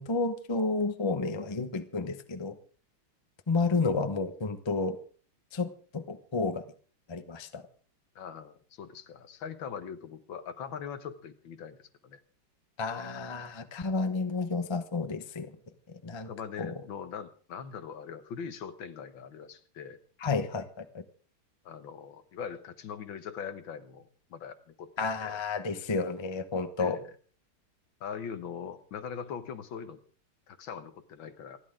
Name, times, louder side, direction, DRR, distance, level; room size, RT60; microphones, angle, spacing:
voice 1, 0.0-2.6 3.5-5.0 5.5-6.6 7.1-7.6 12.8-15.5 16.0-16.3 16.6-16.7 20.2-21.0 25.0-27.0, left 3 dB, 25° left, 9 dB, 0.6 m, -31 dB
voice 2, 8.2-12.2 16.3-20.0 21.7-25.4 26.8-27.1 28.0-30.0 30.5-31.6, left 7 dB, 75° left, 9 dB, 1.9 m, -41 dB
28.0 x 11.0 x 3.7 m, 0.43 s
omnidirectional pair, 2.2 m